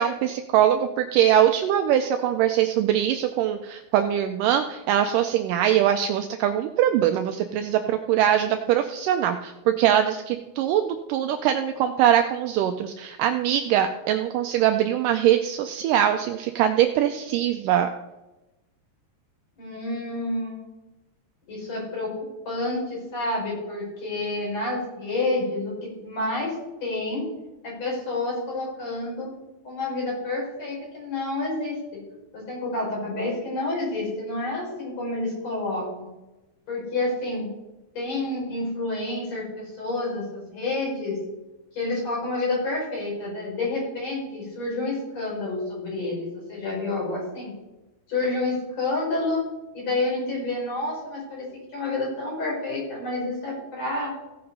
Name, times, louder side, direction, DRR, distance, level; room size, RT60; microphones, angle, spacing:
voice 1, 0.0-17.9, right 10 dB, 80° right, 7 dB, 2.0 m, -22 dB
voice 2, 19.6-20.6 21.5-22.1 22.5-26.6 26.8-27.2 27.6-29.3 29.6-31.8 32.3-36.1 36.7-37.5 37.9-41.2 41.7-47.5 48.1-49.5 49.7-54.1, left 2 dB, 45° left, -4 dB, 6.0 m, -29 dB
16.0 x 5.8 x 5.4 m, 1.0 s
omnidirectional pair, 4.2 m